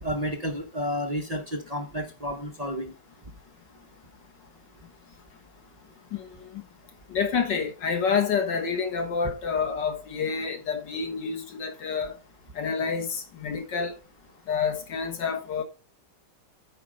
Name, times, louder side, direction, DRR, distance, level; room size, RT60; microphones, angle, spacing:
voice 1, 0.0-2.9, equal, 25° right, 0.9 m, -31 dB
voice 2, 6.1-6.6 7.1-12.2 12.6-13.9 14.5-15.6, left 6 dB, 80° left, 2.2 m, -28 dB
8.7 x 5.0 x 4.9 m
omnidirectional pair, 1.9 m